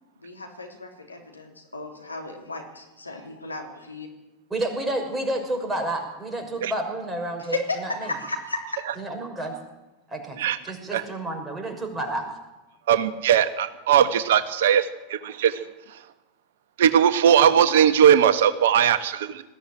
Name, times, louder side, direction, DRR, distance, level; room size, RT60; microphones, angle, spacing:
voice 1, 0.2-4.1 7.4-8.8, left 2 dB, 90° left, 2 dB, 3.4 m, -34 dB
voice 2, 4.5-8.1 9.0-9.5 10.1-10.4 10.6-12.3, right 1 dB, 10° right, 2 dB, 6.2 m, -30 dB
voice 3, 12.9-16.0 16.8-19.4, right 9 dB, 65° right, 11 dB, 1.3 m, -19 dB
20.0 x 15.0 x 9.1 m, 1.1 s
figure-of-eight pair, 90°, 0 cm